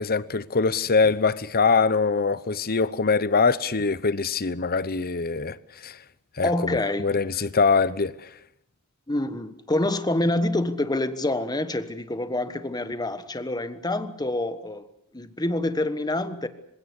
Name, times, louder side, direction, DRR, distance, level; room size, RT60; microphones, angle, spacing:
voice 1, 0.0-5.6 5.8-5.9 6.4-8.1, left 4 dB, 45° left, 0.9 m, -23 dB
voice 2, 6.4-7.5 9.1-14.9 15.1-16.5, left 1 dB, 20° left, 1.4 m, -27 dB
26.5 x 17.0 x 8.4 m
head